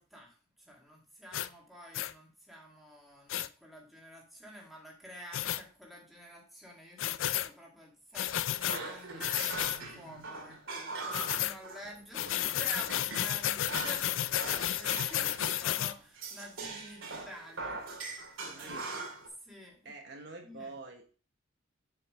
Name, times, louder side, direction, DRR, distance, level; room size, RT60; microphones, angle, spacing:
voice 1, 0.0-17.8 18.5-18.8 19.4-19.9 20.4-20.7, equal, ahead, -3 dB, 2.0 m, -50 dB
sound 1, 1.3-1.5 1.9-2.1 3.3-3.5 5.3-5.6 7.0-7.5 8.1-8.8 9.2-9.8 11.1-11.6 12.1-15.9, left 12 dB, 75° left, 0.4 m, -32 dB
sound 2, 8.2-12.0 12.3-13.4 13.7-15.7 16.2-19.3, right 3 dB, 80° right, 2.3 m, -42 dB
voice 2, 18.4-18.9 19.8-21.1, right 2 dB, 55° right, 3 dB, 1.0 m, -46 dB
7.1 x 5.9 x 3.1 m, 0.39 s
head